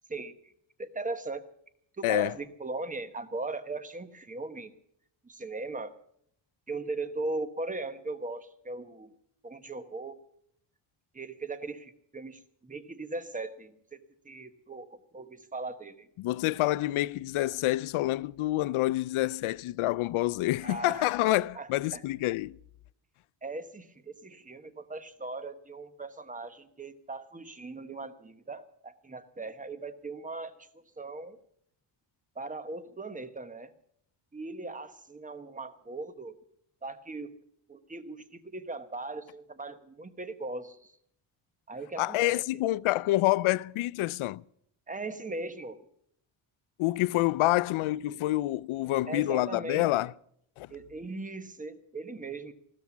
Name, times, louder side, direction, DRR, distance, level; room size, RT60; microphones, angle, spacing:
voice 1, 0.8-1.4 2.0-4.7 5.2-5.9 6.7-9.1 9.4-10.2 11.1-14.0 14.2-16.1 20.6-22.0 23.4-30.7 31.0-31.4 32.3-33.7 34.3-36.3 36.8-37.3 37.7-40.9 41.7-42.5 44.9-45.8 49.1-49.9 50.7-52.5, right 3 dB, 15° right, 1.1 m, -39 dB
voice 2, 2.0-2.3 16.2-22.6 42.0-44.4 46.8-50.1 50.6-50.7, left 17 dB, 75° left, 0.5 m, -27 dB
15.5 x 13.0 x 7.2 m
cardioid pair, 110°, 50 cm